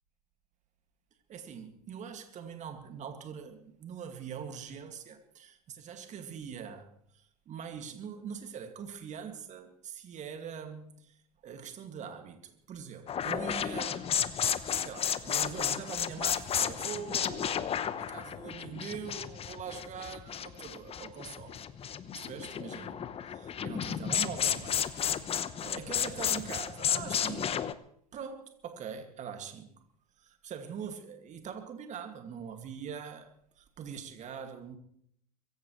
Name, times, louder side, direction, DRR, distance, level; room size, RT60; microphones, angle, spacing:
voice 1, 1.3-14.1 14.8-21.7 22.1-25.1 25.6-27.7 28.1-29.7 30.2-34.8, right 7 dB, 35° right, 2.2 m, -43 dB
sound 1, 13.1-27.7, left 9 dB, 30° left, 1.0 m, -33 dB
23.0 x 15.5 x 3.2 m
hypercardioid pair, 90°, 20 cm